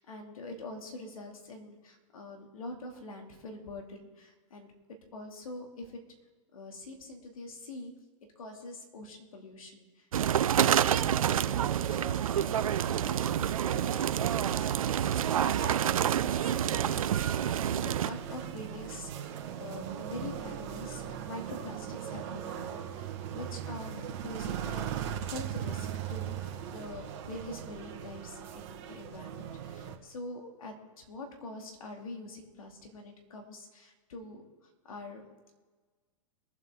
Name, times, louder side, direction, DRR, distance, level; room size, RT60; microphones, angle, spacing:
voice 1, 0.0-4.7 5.1-6.0 6.5-7.9 8.4-10.1 10.5-24.9 25.3-35.2, left 2 dB, 80° left, 2 dB, 2.5 m, -45 dB
sound 1, 10.1-18.1, right 10 dB, 80° right, 0.5 m, -28 dB
sound 2, 10.9-30.0, right 9 dB, 50° right, 1.7 m, -39 dB
22.5 x 8.2 x 3.8 m, 1.3 s
hypercardioid pair, 115°, 18 cm